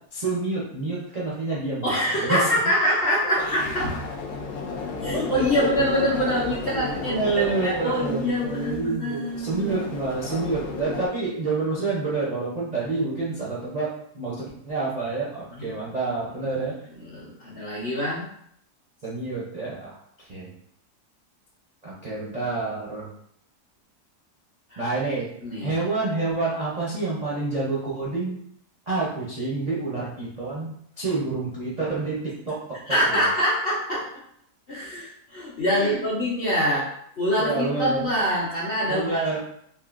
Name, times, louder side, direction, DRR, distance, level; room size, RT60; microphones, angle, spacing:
voice 1, 0.1-2.5 3.4-3.5 5.6-5.7 6.7-13.9 14.1-16.7 19.0-20.5 21.8-23.1 24.8-25.3 25.6-28.4 28.9-32.8 33.1-33.2 35.7-36.0 37.4-38.1 38.9-39.4, right 3 dB, 50° right, -7 dB, 0.4 m, -28 dB
voice 2, 1.8-3.9 5.0-9.7 15.5-15.7 17.1-18.2 24.7-24.8 25.4-25.7 32.9-34.1 34.7-36.9 37.2-39.4, equal, 50° left, -7 dB, 0.7 m, -25 dB
sound 1, 3.3-11.1, left 4 dB, 70° left, 1.0 m, -34 dB
3.6 x 2.6 x 2.4 m, 0.70 s
omnidirectional pair, 1.7 m